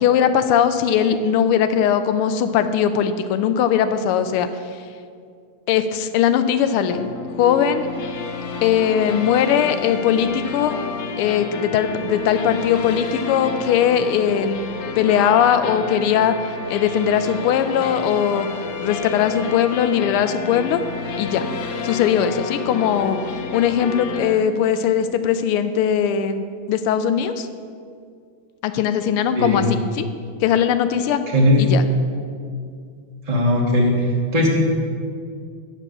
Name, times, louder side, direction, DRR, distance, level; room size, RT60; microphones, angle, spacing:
voice 1, 0.0-4.5 5.7-7.1 7.4-7.9 8.6-10.7 11.2-16.4 16.7-18.5 18.8-20.8 21.2-21.5 21.8-23.2 23.5-27.5 28.6-30.1 30.4-31.2 31.6-31.8, left 8 dB, 85° left, 10 dB, 1.5 m, -19 dB
sound 1, 6.9-24.4, left 5 dB, 70° left, 1.3 m, -30 dB
voice 2, 29.3-29.7 31.3-31.6 33.3-34.5, left 1 dB, 35° right, -3 dB, 0.6 m, -18 dB
9.7 x 5.3 x 6.4 m, 2.2 s
omnidirectional pair, 2.4 m